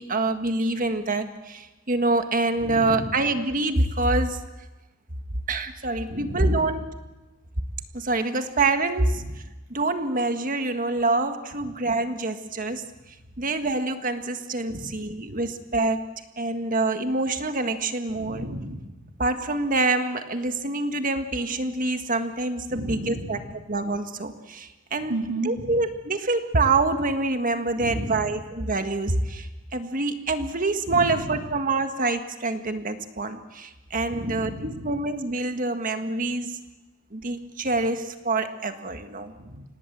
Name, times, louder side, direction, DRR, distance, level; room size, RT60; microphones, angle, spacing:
voice 1, 0.0-4.4 5.5-6.9 7.9-9.2 9.7-12.8 13.4-16.0 16.4-18.5 19.2-23.4 23.7-25.1 25.4-36.6 37.1-39.3, right 2 dB, 40° right, 7 dB, 1.6 m, -26 dB
voice 2, 2.6-3.1 6.1-6.7 9.2-9.3 14.7-14.9 15.3-15.4 18.1-19.0 22.7-23.6 25.1-25.8 27.8-28.3 30.9-31.3 34.1-34.9 39.3-39.6, right 1 dB, 85° right, 4 dB, 3.0 m, -34 dB
26.0 x 18.5 x 7.6 m, 1.1 s
head